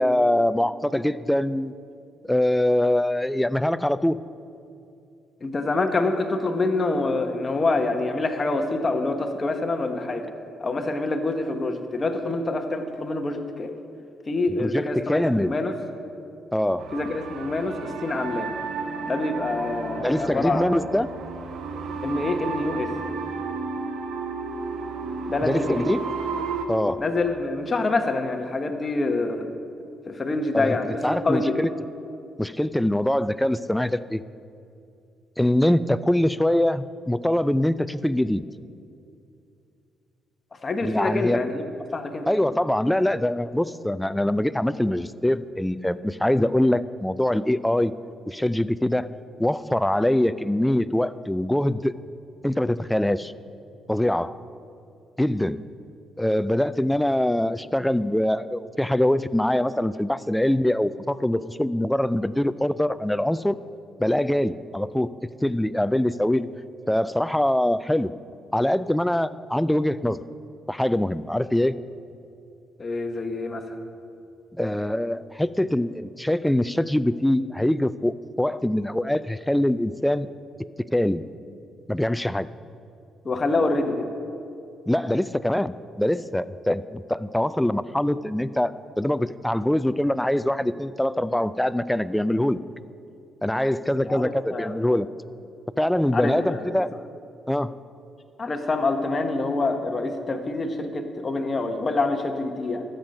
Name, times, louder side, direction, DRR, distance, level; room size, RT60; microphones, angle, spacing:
voice 1, 0.0-1.7 2.2-4.2 14.6-15.5 16.5-16.9 20.0-21.1 25.5-26.0 26.7-27.0 30.5-30.8 31.0-31.7 32.4-34.2 35.4-38.4 40.8-41.4 42.3-47.9 48.3-49.1 49.4-51.9 52.4-53.3 53.9-54.4 55.2-55.6 56.2-63.6 64.0-65.1 65.4-66.5 66.9-68.1 68.5-70.2 70.7-71.7 74.5-80.3 80.8-81.2 81.9-82.5 84.9-92.6 93.4-95.1 95.8-96.9 97.5-97.8, left 1 dB, 5° left, 15 dB, 0.3 m, -23 dB
voice 2, 5.4-10.3 10.6-13.7 14.3-15.8 16.9-18.5 19.0-20.9 22.0-22.9 25.2-25.9 27.0-29.5 30.1-31.6 40.6-41.6 41.9-42.3 72.8-73.6 83.2-84.1 94.0-94.7 96.1-96.7 98.4-102.8, left 2 dB, 30° left, 5 dB, 1.1 m, -26 dB
sound 1, 16.8-26.7, right 4 dB, 70° right, 0.8 m, -33 dB
13.0 x 7.8 x 5.3 m, 2.6 s
cardioid pair, 90°, 0 cm